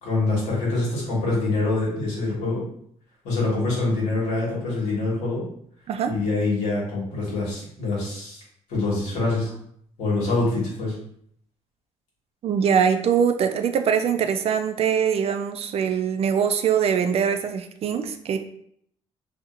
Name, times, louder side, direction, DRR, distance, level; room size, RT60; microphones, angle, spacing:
voice 1, 0.0-2.6 3.2-5.4 6.0-8.4 8.7-9.5 10.0-10.9, left 2 dB, 90° left, -5 dB, 1.2 m, -25 dB
voice 2, 12.4-18.4, right 7 dB, 55° right, 8 dB, 0.3 m, -22 dB
2.8 x 2.4 x 2.4 m, 0.66 s
cardioid pair, 75°, 13 cm